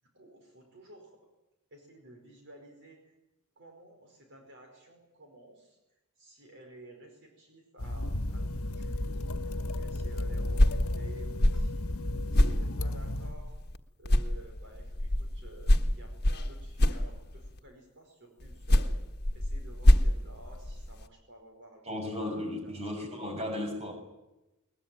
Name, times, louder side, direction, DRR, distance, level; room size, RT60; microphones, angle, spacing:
voice 1, 0.1-1.2 1.7-3.1 3.5-12.0 12.3-13.5 14.0-18.9 19.3-22.1 22.6-22.8, right 1 dB, 55° right, 3 dB, 5.0 m, -53 dB
sound 1, 7.8-13.3, left 1 dB, 70° left, 1.3 m, -33 dB
sound 2, 10.4-13.8 14.0-17.6 18.4-21.1, left 1 dB, 50° left, 1.6 m, -26 dB
voice 2, 21.8-23.9, left 1 dB, 30° right, 4 dB, 6.5 m, -35 dB
21.5 x 21.0 x 9.2 m, 1.0 s
head